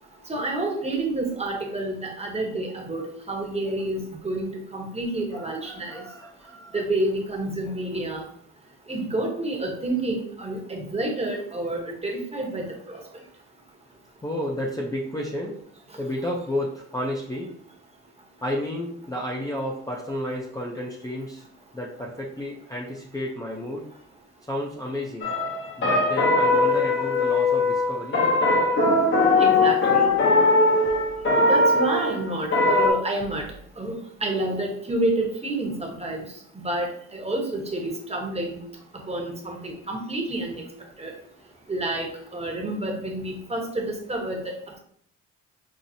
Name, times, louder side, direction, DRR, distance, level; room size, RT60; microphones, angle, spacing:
voice 1, 0.3-5.9 6.7-8.2 8.9-12.7 29.4-30.1 31.4-33.4 33.8-33.9 34.2-35.7 36.0-36.2 36.6-36.9 37.1-38.6 39.1-39.6 39.9-40.6 41.0-41.1 41.7-42.1 42.3-44.4, right 2 dB, 20° right, 1 dB, 0.9 m, -28 dB
voice 2, 5.3-6.9 14.2-15.5 16.0-17.5 18.4-21.4 21.7-23.9 24.5-25.3 25.8-28.2 38.8-38.9 41.0-41.1 42.4-42.6, left 1 dB, 10° left, -2 dB, 0.5 m, -32 dB
sound 1, 25.2-32.9, left 2 dB, 40° left, 0.8 m, -20 dB
5.5 x 2.0 x 2.6 m, 0.65 s
cardioid pair, 90°, 30 cm